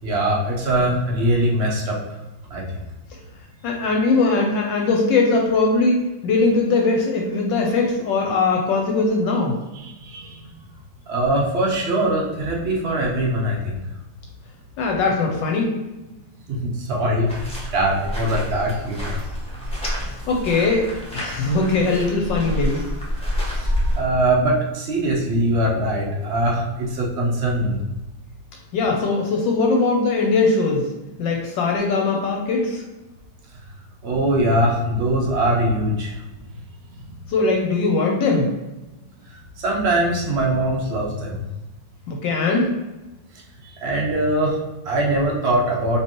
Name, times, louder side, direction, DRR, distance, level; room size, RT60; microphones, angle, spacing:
voice 1, 0.0-2.0 2.5-2.6 9.7-10.5 11.1-13.8 16.5-19.1 23.4-27.8 34.0-36.2 37.1-37.2 39.6-41.4 43.6-46.0, right 1 dB, 75° right, -2 dB, 0.6 m, -22 dB
voice 2, 3.6-9.5 14.8-15.7 19.9-22.8 28.7-30.9 31.2-32.8 37.3-38.5 42.1-42.7, left 3 dB, 75° left, 1 dB, 1.2 m, -20 dB
sound 1, 17.3-24.0, equal, 5° left, 0.6 m, -28 dB
4.5 x 3.0 x 3.0 m, 1.0 s
omnidirectional pair, 2.2 m